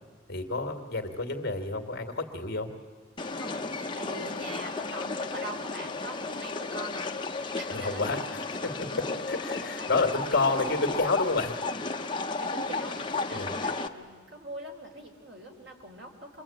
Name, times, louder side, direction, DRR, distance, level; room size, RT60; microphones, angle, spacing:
voice 1, 0.3-2.7 7.7-8.9 9.3-11.5 13.3-13.5, left 3 dB, 50° left, 5 dB, 2.2 m, -29 dB
sound 1, 3.2-13.9, left 3 dB, 25° left, 1.0 m, -34 dB
voice 2, 3.4-8.4 8.9-9.2 9.6-10.9 12.4-16.4, right 1 dB, 55° right, 1 dB, 4.2 m, -43 dB
27.5 x 22.5 x 8.8 m, 1.5 s
head